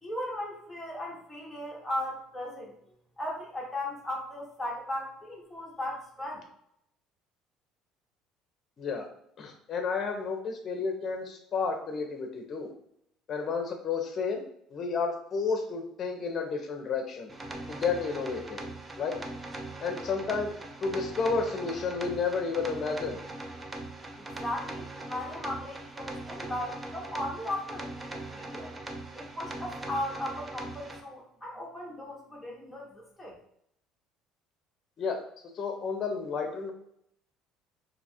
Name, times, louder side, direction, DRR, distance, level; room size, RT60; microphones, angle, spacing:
voice 1, 0.0-2.7 3.2-6.4 24.2-28.7 29.1-33.4, left 1 dB, ahead, -4 dB, 0.9 m, -37 dB
voice 2, 9.4-12.7 13.3-14.4 14.7-17.3 17.7-18.6 19.0-19.1 19.8-20.5 20.8-23.2 35.0-35.2 35.5-36.7, left 5 dB, 35° left, 4 dB, 0.6 m, -31 dB
sound 1, 17.3-31.0, right 2 dB, 15° right, 0.4 m, -40 dB
2.7 x 2.4 x 4.1 m, 0.71 s
cardioid pair, 155°, 0 cm